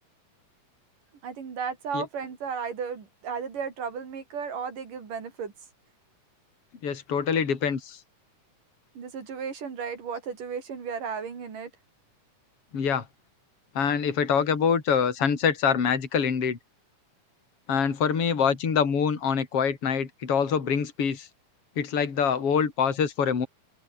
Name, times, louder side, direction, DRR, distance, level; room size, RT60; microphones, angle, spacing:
voice 1, 1.2-5.5 9.0-11.7, right 6 dB, 85° right, 5.3 m, -34 dB
voice 2, 6.8-8.0 12.7-13.0 13.8-16.6 17.7-21.3 21.8-23.5, left 6 dB, 45° left, 4.1 m, -25 dB
open air
omnidirectional pair, 3.7 m